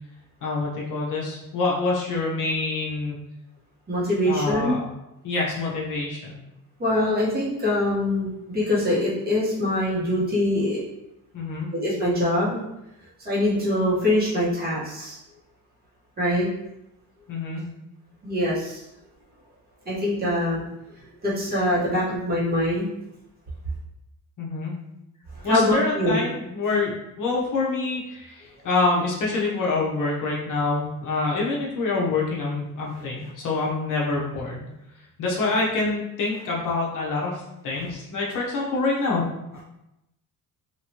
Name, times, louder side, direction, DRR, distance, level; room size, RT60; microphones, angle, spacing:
voice 1, 0.4-3.2 4.2-4.9 5.2-6.4 11.3-11.7 17.3-17.6 24.4-24.7 25.4-26.9 27.2-34.7 35.2-39.2, left 3 dB, 60° left, -3 dB, 0.8 m, -26 dB
voice 2, 3.9-4.8 6.8-10.8 11.7-12.6 13.2-15.2 16.2-16.5 18.2-18.8 19.9-20.6 21.2-22.9 25.4-26.2, left 1 dB, 25° right, -8 dB, 1.1 m, -23 dB
3.0 x 2.5 x 2.8 m, 0.89 s
cardioid pair, 150°, 36 cm